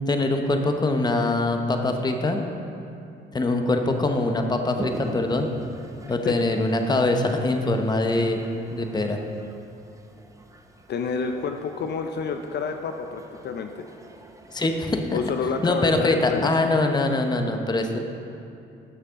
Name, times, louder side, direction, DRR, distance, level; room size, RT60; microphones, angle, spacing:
voice 1, 0.1-2.5 3.3-5.5 6.1-8.4 8.7-9.2 14.5-15.2 15.6-18.0, left 2 dB, 20° left, 5 dB, 0.8 m, -23 dB
Toilet flush, 4.7-16.2, right 2 dB, 15° right, 0.7 m, -43 dB
voice 2, 10.9-13.9 15.1-16.5, left 5 dB, 60° left, 6 dB, 0.5 m, -28 dB
12.5 x 6.6 x 3.6 m, 2.6 s
cardioid pair, 90°, 20 cm